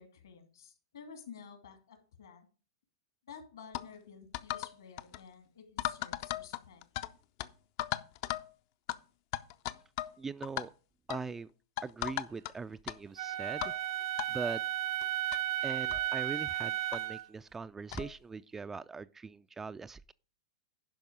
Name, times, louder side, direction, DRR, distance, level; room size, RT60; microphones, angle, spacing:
voice 1, 0.0-2.5 3.3-6.8, left 6 dB, 70° left, 2.6 m, -52 dB
sound 1, 3.7-3.9 4.3-4.7 5.0-5.2 5.8-7.1 7.4-7.5 7.8-8.5 8.9-9.0 9.3-10.2 10.4-10.7 11.1-11.3 11.8-12.5 12.9-13.0 13.6-13.8 14.2-14.3 15.0-15.1 15.3-15.4 15.9-16.1 16.9-17.0 17.9-18.1, left 14 dB, 50° left, 0.6 m, -36 dB
voice 2, 10.2-10.7 11.1-11.5 11.8-13.7 14.3-14.6 15.6-20.1, right 4 dB, 15° right, 0.4 m, -41 dB
Wind instrument woodwind instrument, 13.2-17.2, right 12 dB, 55° right, 0.7 m, -34 dB
11.0 x 5.3 x 5.1 m
hypercardioid pair, 105°, 2 cm